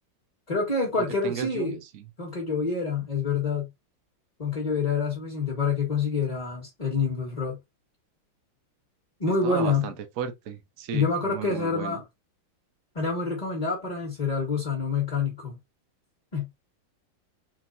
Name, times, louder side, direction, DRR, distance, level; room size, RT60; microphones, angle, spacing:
voice 1, 0.5-1.8 2.2-3.7 4.4-7.6 9.2-9.9 10.9-12.0 12.9-15.6 16.3-16.5, left 4 dB, 25° left, 1.3 m, -27 dB
voice 2, 1.2-2.0 9.4-12.0, right 7 dB, 55° right, 0.9 m, -35 dB
4.5 x 3.9 x 2.6 m
omnidirectional pair, 2.2 m